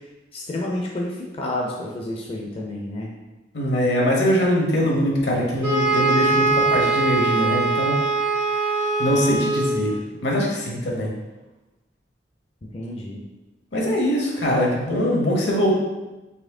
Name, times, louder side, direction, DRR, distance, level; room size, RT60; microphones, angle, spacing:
voice 1, 0.3-3.1 12.7-13.2, left 1 dB, 35° left, -2 dB, 0.5 m, -30 dB
voice 2, 3.5-8.0 9.0-9.9 10.2-11.1 13.7-15.7, equal, 75° left, -2 dB, 1.1 m, -22 dB
sound 1, 5.6-10.0, right 3 dB, 65° right, 0.9 m, -22 dB
4.2 x 2.9 x 3.6 m, 1.1 s
head